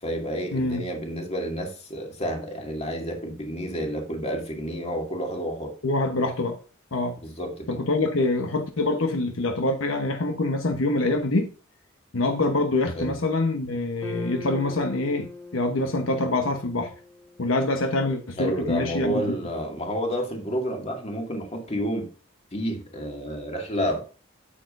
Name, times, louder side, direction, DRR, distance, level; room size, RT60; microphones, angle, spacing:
voice 1, 0.0-5.7 7.2-7.8 12.9-13.1 18.4-22.1 22.5-24.0, equal, 30° left, 2.3 m, -30 dB
voice 2, 0.5-0.8 5.8-6.6 6.9-7.2 7.7-11.5 12.1-16.9 17.4-19.2, left 2 dB, 80° left, 1.1 m, -25 dB
sound 1, 14.0-18.3, left 3 dB, 10° left, 1.2 m, -42 dB
8.7 x 8.6 x 2.6 m
head